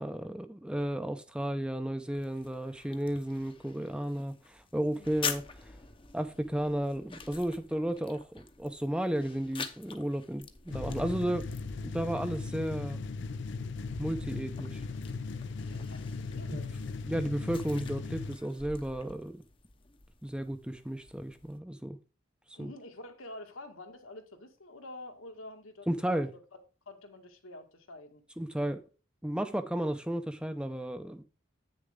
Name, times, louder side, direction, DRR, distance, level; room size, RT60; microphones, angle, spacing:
voice 1, 0.0-5.4 6.1-11.5 11.8-13.0 14.0-14.8 16.5-16.6 17.0-19.4 20.2-22.0 22.6-22.7 25.9-26.3 28.4-28.8 29.2-31.2, right 1 dB, 5° right, 0.6 m, -33 dB
sound 1, 2.1-21.6, left 5 dB, 25° left, 0.8 m, -46 dB
voice 2, 4.9-5.3 15.5-16.8 22.6-26.4 26.9-28.2, left 2 dB, 80° left, 2.0 m, -48 dB
sound 2, 10.7-18.4, left 4 dB, 60° left, 0.5 m, -38 dB
9.0 x 6.6 x 3.7 m
head